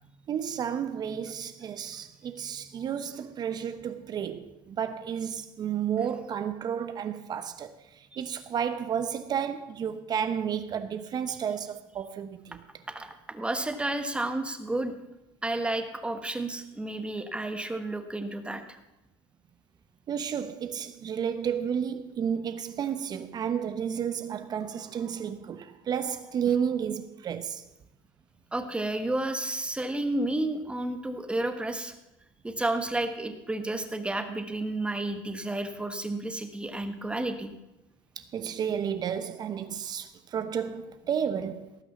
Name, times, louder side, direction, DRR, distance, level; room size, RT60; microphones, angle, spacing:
voice 1, 0.3-12.6 20.1-27.6 38.2-41.7, right 8 dB, 35° right, 0.9 m, -32 dB
voice 2, 12.9-14.9 15.4-18.6 28.5-31.9 32.4-37.5, right 2 dB, 10° right, 1.3 m, -31 dB
18.0 x 6.0 x 7.2 m
supercardioid pair, 105°, 12 cm